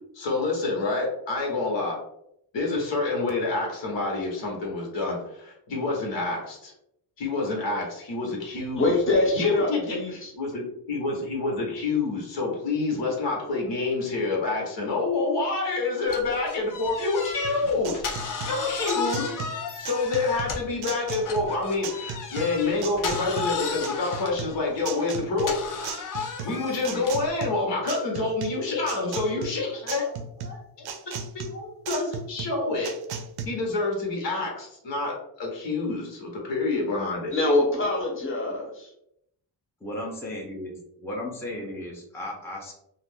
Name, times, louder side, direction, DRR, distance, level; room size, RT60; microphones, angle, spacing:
voice 1, 0.1-2.0 2.5-6.7 7.2-8.9 9.3-18.0 18.4-19.3 19.8-25.6 26.4-32.9 33.4-37.3, left 3 dB, 80° left, -1 dB, 1.2 m, -28 dB
voice 2, 8.8-10.3 36.7-36.8 37.3-38.9, left 2 dB, 30° left, -1 dB, 0.9 m, -24 dB
sound 1, 16.1-20.8 21.2-27.3, left 5 dB, 50° left, 0.6 m, -34 dB
sound 2, 17.4-33.5, right 5 dB, 60° right, 0.5 m, -37 dB
voice 3, 39.8-42.7, left 1 dB, 5° left, -2 dB, 0.6 m, -35 dB
2.4 x 2.4 x 3.5 m, 0.77 s
cardioid pair, 125°, 43 cm